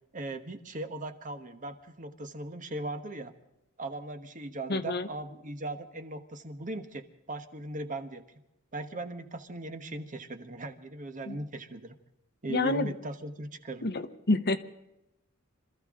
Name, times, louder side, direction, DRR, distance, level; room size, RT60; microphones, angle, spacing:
voice 1, 0.1-3.3 3.8-8.2 8.7-12.0 12.4-13.9, right 2 dB, 40° right, 8 dB, 1.2 m, -38 dB
voice 2, 4.7-5.1 11.3-11.4 12.5-12.9 13.8-14.6, left 2 dB, 50° left, 10 dB, 1.0 m, -28 dB
26.5 x 14.0 x 3.7 m, 0.87 s
head